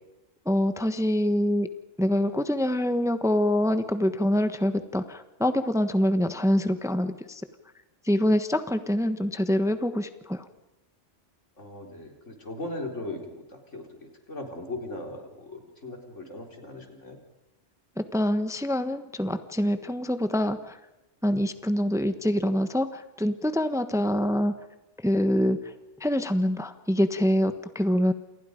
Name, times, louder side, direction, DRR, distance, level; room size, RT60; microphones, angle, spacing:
voice 1, 0.5-1.7 2.0-7.4 8.1-10.4 18.0-20.8 21.2-24.5 25.0-25.6 26.0-28.1, equal, 5° right, 10 dB, 1.2 m, -25 dB
voice 2, 11.6-17.2, left 2 dB, 80° left, 3 dB, 4.5 m, -38 dB
29.5 x 28.0 x 5.2 m, 1.0 s
omnidirectional pair, 1.2 m